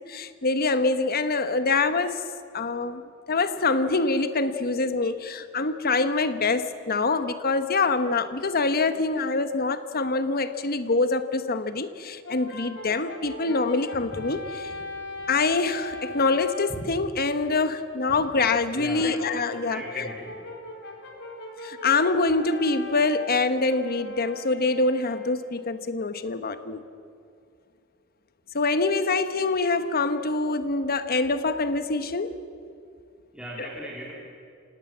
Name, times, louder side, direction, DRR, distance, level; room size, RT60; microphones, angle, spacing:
voice 1, 0.1-2.3 2.5-3.0 3.3-14.7 15.3-20.1 21.6-26.8 28.5-32.4, left 3 dB, 45° left, 11 dB, 1.2 m, -25 dB
Brass instrument, 12.2-16.8 19.2-25.5, left 2 dB, 60° left, 3.9 m, -40 dB
Walk footsteps, 13.9-18.4, equal, 20° left, 7.3 m, -43 dB
voice 2, 18.7-19.2 19.7-20.5 33.3-34.1, equal, 5° right, -5 dB, 3.4 m, -38 dB
28.0 x 18.0 x 7.5 m, 2.4 s
head